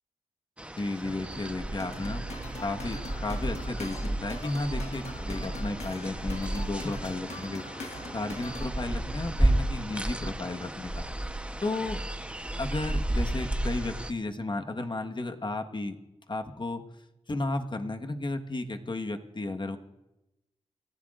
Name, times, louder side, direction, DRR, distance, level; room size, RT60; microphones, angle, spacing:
sound 1, 0.6-14.1, right 1 dB, 10° right, 1.0 m, -32 dB
voice 1, 0.8-2.2 2.6-7.6 8.1-11.1 11.6-12.0 12.6-16.0 16.3-16.8 17.3-19.8, left 2 dB, 40° left, 5 dB, 1.4 m, -33 dB
sound 2, 1.0-10.1, right 6 dB, 55° right, 0.4 m, -47 dB
sound 3, 1.8-8.7, left 3 dB, 65° left, 1.7 m, -44 dB
30.0 x 15.0 x 2.5 m, 0.95 s
cardioid pair, 55°, 12 cm